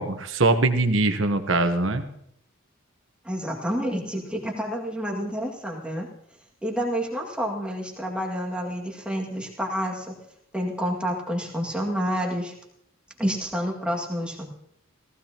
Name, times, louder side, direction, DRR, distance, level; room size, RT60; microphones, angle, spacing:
voice 1, 0.0-2.0, right 2 dB, 65° right, 7 dB, 1.2 m, -22 dB
voice 2, 3.2-6.1 6.6-10.1 10.5-12.5 13.2-14.5, equal, 5° right, -2 dB, 2.1 m, -29 dB
18.0 x 15.5 x 2.9 m, 0.73 s
head